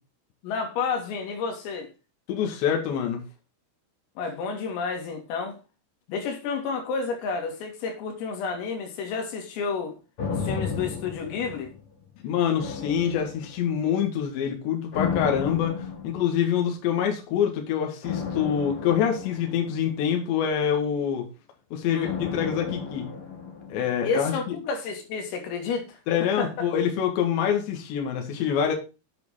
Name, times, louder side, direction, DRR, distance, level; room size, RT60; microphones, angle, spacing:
voice 1, 0.4-1.9 4.2-5.6 6.1-9.9 10.3-11.7 21.9-22.2 24.1-26.0 26.4-26.5, left 5 dB, 80° left, 5.0 m, -30 dB
voice 2, 2.3-3.2 12.2-21.2 21.7-23.1 23.7-24.6 26.1-28.7, left 8 dB, 65° left, 3.9 m, -26 dB
sound 1, 10.2-12.1 12.6-13.8 14.9-16.6 18.0-20.4 22.0-24.2 24.5-24.6, left 5 dB, 35° left, 2.5 m, -34 dB
9.0 x 7.6 x 5.6 m
omnidirectional pair, 5.9 m